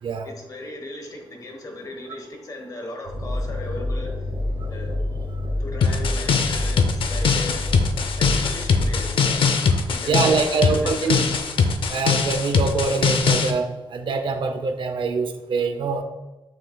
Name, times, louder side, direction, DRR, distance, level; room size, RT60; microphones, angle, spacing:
voice 1, 0.2-4.1 4.7-4.9 5.6-7.6 8.2-9.4 9.9-11.4, left 2 dB, 40° left, 2 dB, 1.2 m, -37 dB
sound 1, 3.0-9.1, left 1 dB, 90° right, 1.3 m, -28 dB
sound 2, 5.8-13.5, left 5 dB, 70° left, 0.6 m, -21 dB
voice 2, 10.1-11.2 11.9-16.0, right 4 dB, 60° right, 7 dB, 0.6 m, -24 dB
7.7 x 6.4 x 2.3 m, 1.1 s
wide cardioid pair, 165°, 9 cm